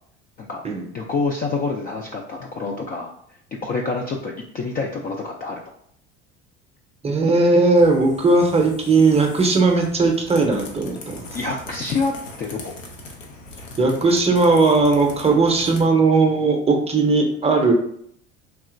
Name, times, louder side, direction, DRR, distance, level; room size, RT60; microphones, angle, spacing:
voice 1, 0.9-3.1 3.6-5.6 11.3-12.1 12.4-12.7, left 4 dB, 25° left, 0 dB, 0.3 m, -27 dB
voice 2, 7.0-11.3 13.8-17.7, right 3 dB, 15° right, 2 dB, 0.6 m, -18 dB
sound 1, 7.8-15.8, left 2 dB, 85° left, 0.6 m, -40 dB
3.2 x 2.8 x 2.5 m, 0.68 s
hypercardioid pair, 65°, 37 cm